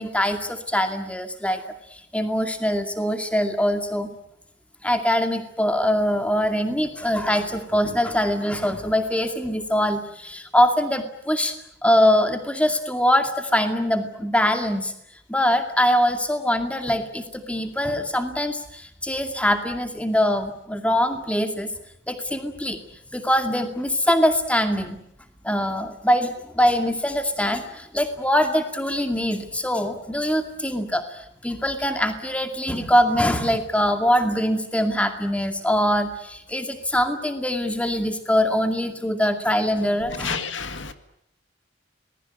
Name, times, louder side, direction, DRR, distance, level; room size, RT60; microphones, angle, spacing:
voice 1, 0.0-1.6 1.9-4.1 4.8-11.5 11.8-14.9 15.3-21.7 22.1-22.8 23.1-25.0 25.4-40.4, equal, 5° left, 2.2 m, -23 dB
voice 2, 40.2-40.9, left 6 dB, 80° left, 2.0 m, -30 dB
26.5 x 20.0 x 8.9 m
head